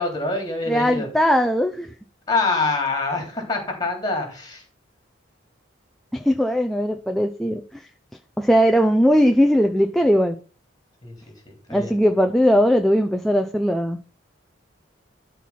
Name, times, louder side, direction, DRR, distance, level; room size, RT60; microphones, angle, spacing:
voice 1, 0.0-1.1 2.3-4.6 11.0-11.9, left 3 dB, 20° left, 3 dB, 3.4 m, -25 dB
voice 2, 0.7-1.9 6.1-7.8 8.4-10.4 11.7-14.0, equal, ahead, 5 dB, 0.5 m, -19 dB
12.5 x 4.6 x 5.8 m, 0.36 s
head